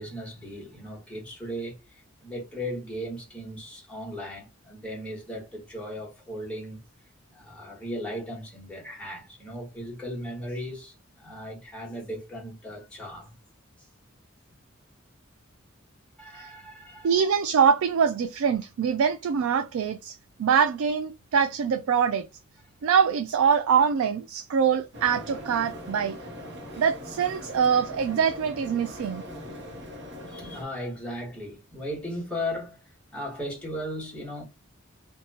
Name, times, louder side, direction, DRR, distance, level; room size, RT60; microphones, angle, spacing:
voice 1, 0.0-6.8 7.3-13.3 13.8-13.9 16.2-17.1 30.3-32.8 33.1-34.4, equal, 5° left, 1.2 m, -37 dB
voice 2, 17.0-22.2 22.8-26.2 26.7-29.2, right 7 dB, 85° right, 0.3 m, -24 dB
sound 1, 24.9-30.6, equal, 55° right, 0.8 m, -41 dB
2.8 x 2.2 x 2.7 m
head